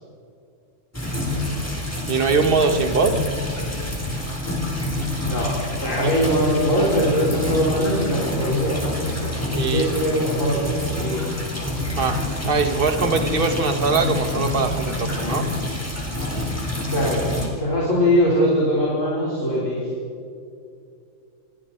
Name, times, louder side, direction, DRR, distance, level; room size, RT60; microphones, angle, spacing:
sound 1, 0.9-17.5, left 1 dB, 10° left, 3.9 m, -27 dB
voice 1, 2.1-3.2 6.0-6.1 9.5-9.9 12.0-12.2 12.5-15.5, right 4 dB, 45° right, 6 dB, 1.7 m, -22 dB
voice 2, 5.8-8.8 9.5-11.2 16.9-17.2 17.6-19.9, equal, 70° left, -6 dB, 5.5 m, -21 dB
29.0 x 24.5 x 4.5 m, 2.5 s
omnidirectional pair, 1.4 m